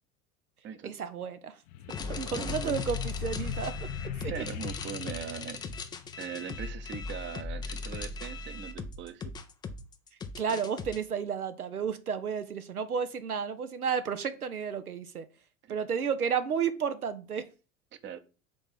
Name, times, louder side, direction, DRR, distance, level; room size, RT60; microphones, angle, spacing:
voice 1, 0.8-1.6 2.1-3.7 4.2-4.3 10.4-15.3 15.7-17.5, right 7 dB, 90° right, 0.6 m, -32 dB
sound 1, 1.7-6.6, left 10 dB, 45° left, 0.6 m, -39 dB
sound 2, 1.9-11.0, left 4 dB, 10° left, 0.3 m, -38 dB
voice 2, 2.2-2.8 4.3-5.7 6.2-9.3 15.7-15.8 18.0-18.2, right 9 dB, 25° right, 0.7 m, -40 dB
5.3 x 3.4 x 5.6 m
figure-of-eight pair, 75°, 43 cm